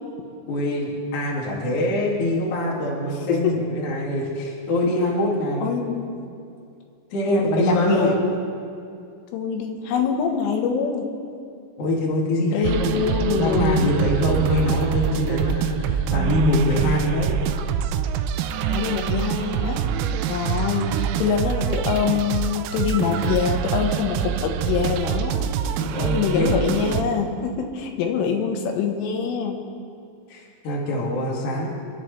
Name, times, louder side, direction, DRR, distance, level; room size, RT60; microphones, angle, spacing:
voice 1, 0.5-5.7 7.1-8.1 11.8-13.0 13.3-17.3 25.8-26.5 30.3-31.7, left 1 dB, 50° left, -4 dB, 2.9 m, -23 dB
voice 2, 5.6-6.1 7.3-8.2 9.3-11.1 12.5-13.9 18.7-19.9 20.3-25.5 26.1-29.6, left 6 dB, 80° left, 3 dB, 3.7 m, -24 dB
sound 1, 12.6-27.0, right 9 dB, 85° right, 3.2 m, -25 dB
29.0 x 11.0 x 3.3 m, 2.5 s
omnidirectional pair, 5.8 m